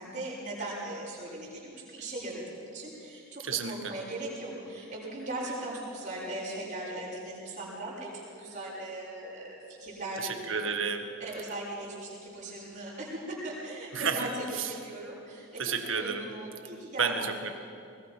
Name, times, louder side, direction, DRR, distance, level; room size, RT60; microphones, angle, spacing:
voice 1, 0.0-10.7 11.2-17.1, right 1 dB, 35° right, -6 dB, 6.3 m, -39 dB
voice 2, 3.4-4.0 10.2-11.1 13.9-14.8 15.6-16.4 17.0-17.5, right 5 dB, 65° right, 6 dB, 1.7 m, -31 dB
21.5 x 20.5 x 6.0 m, 2.5 s
head